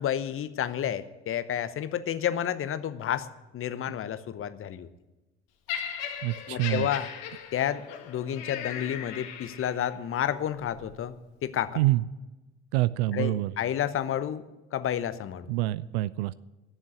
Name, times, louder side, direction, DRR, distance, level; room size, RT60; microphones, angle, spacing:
voice 1, 0.0-3.3 3.5-4.9 6.5-7.1 7.5-11.8 13.1-14.4 14.7-15.5, left 10 dB, 40° left, 14 dB, 0.8 m, -30 dB
Laughter, 5.7-9.9 10.7-10.9, left 8 dB, 65° left, 1.4 m, -38 dB
voice 2, 6.2-6.9 11.8-12.0 12.7-13.5 15.5-16.3, right 17 dB, 65° right, 18 dB, 0.5 m, -26 dB
12.0 x 7.3 x 9.8 m, 1.1 s
hypercardioid pair, 60°, 34 cm